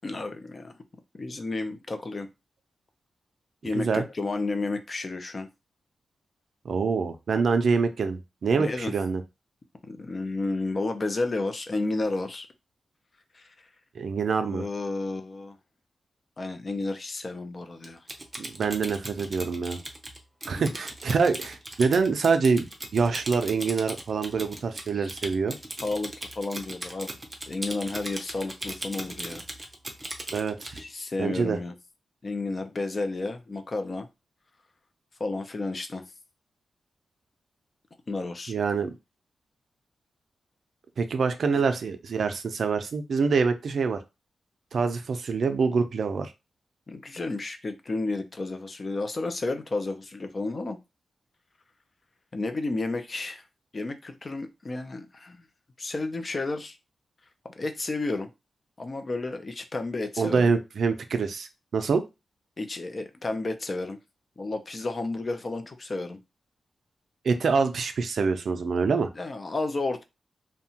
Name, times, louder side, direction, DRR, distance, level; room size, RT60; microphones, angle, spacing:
voice 1, 0.0-0.8 1.1-2.3 3.6-5.5 8.6-8.9 9.9-12.5 13.3-13.7 14.4-15.6 16.4-18.1 20.5-20.8 24.9-25.1 25.8-27.2 27.5-29.4 30.7-31.7 32.2-34.1 35.2-36.1 38.1-38.5 41.5-41.6 46.9-50.8 52.3-53.4 53.7-55.5 55.8-56.8 57.4-58.3 58.8-60.5 62.6-64.0 64.4-66.2 69.1-70.0, left 2 dB, 35° left, 7 dB, 0.4 m, -32 dB
voice 2, 6.6-9.2 14.0-14.6 18.4-19.8 20.5-22.7 22.9-25.5 30.3-30.8 31.2-31.6 38.5-38.9 41.0-44.0 44.7-46.3 60.2-62.0 67.2-69.1, right 5 dB, 65° right, 8 dB, 0.4 m, -25 dB
Typing, 17.8-30.8, right 1 dB, 15° right, 0.5 m, -38 dB
2.8 x 2.1 x 2.7 m, 0.25 s
wide cardioid pair, 120°, 0 cm